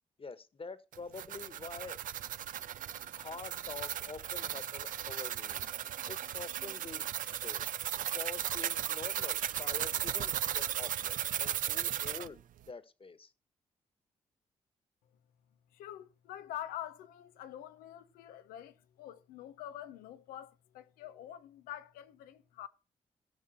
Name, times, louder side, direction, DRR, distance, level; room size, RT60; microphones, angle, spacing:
voice 1, 0.2-2.0 3.2-5.7 6.1-7.7 8.1-12.4 12.7-13.3, left 4 dB, 40° left, 1.6 m, -46 dB
sound 1, 0.9-12.3, right 11 dB, 65° right, 0.5 m, -36 dB
voice 2, 15.7-22.7, left 11 dB, 90° left, 0.9 m, -46 dB
17.0 x 6.0 x 4.4 m
supercardioid pair, 45°, 15 cm